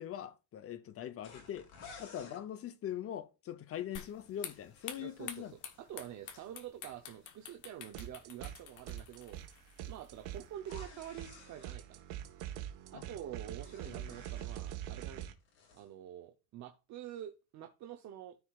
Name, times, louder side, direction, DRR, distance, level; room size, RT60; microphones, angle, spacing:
voice 1, 0.0-1.7 2.0-5.5 12.9-13.0 13.8-14.2 15.2-15.3, left 10 dB, 35° left, 0.7 m, -42 dB
sound 1, 1.2-2.4 4.1-6.5 10.6-11.8 13.2-15.1 15.4-15.9, left 4 dB, 75° left, 2.8 m, -56 dB
sound 2, 4.0-10.5, left 8 dB, 50° left, 1.2 m, -50 dB
voice 2, 5.0-12.0 12.9-15.3 15.7-18.4, right 11 dB, 45° right, 0.7 m, -47 dB
sound 3, 7.9-8.6 8.9-15.3, right 11 dB, 80° right, 1.3 m, -44 dB
13.5 x 4.8 x 2.4 m
cardioid pair, 140°, 40 cm